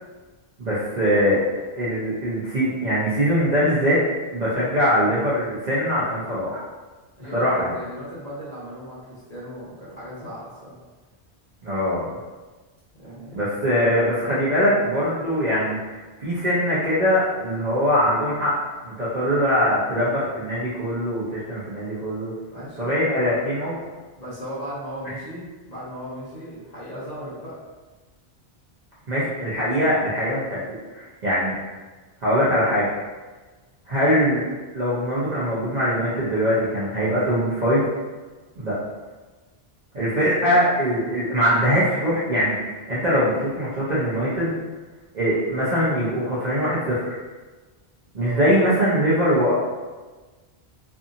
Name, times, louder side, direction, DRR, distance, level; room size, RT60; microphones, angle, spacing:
voice 1, 0.6-1.4 1.7-4.0 4.3-6.6 7.3-7.7 11.6-12.1 13.3-15.8 16.2-18.5 18.8-22.3 22.8-23.8 29.1-30.6 30.9-31.6 32.2-32.9 33.9-34.4 34.7-37.9 38.6-38.8 39.9-44.5 45.1-47.2 48.1-49.5, equal, 50° right, -9 dB, 0.7 m, -22 dB
voice 2, 7.2-10.8 13.0-13.4 22.5-22.9 24.1-27.6 40.1-40.6 48.2-48.4, equal, 40° left, -8 dB, 0.9 m, -37 dB
2.7 x 2.6 x 2.5 m, 1.3 s
omnidirectional pair, 1.1 m